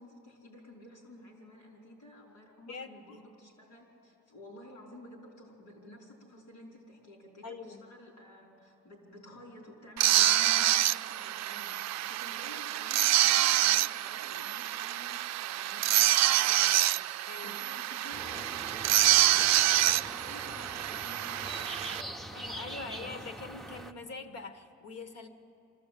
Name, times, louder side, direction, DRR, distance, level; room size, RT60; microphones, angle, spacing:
voice 1, 0.0-21.7, left 1 dB, 85° left, 0 dB, 5.0 m, -52 dB
voice 2, 2.7-3.2 7.4-7.8 17.3-17.6 22.3-25.3, left 3 dB, 55° left, 8 dB, 1.6 m, -43 dB
sound 1, 10.0-22.0, right 14 dB, 60° right, 0.4 m, -27 dB
sound 2, 18.1-23.9, right 1 dB, ahead, 0.8 m, -43 dB
24.5 x 13.5 x 8.6 m, 2.7 s
cardioid pair, 90°, 30 cm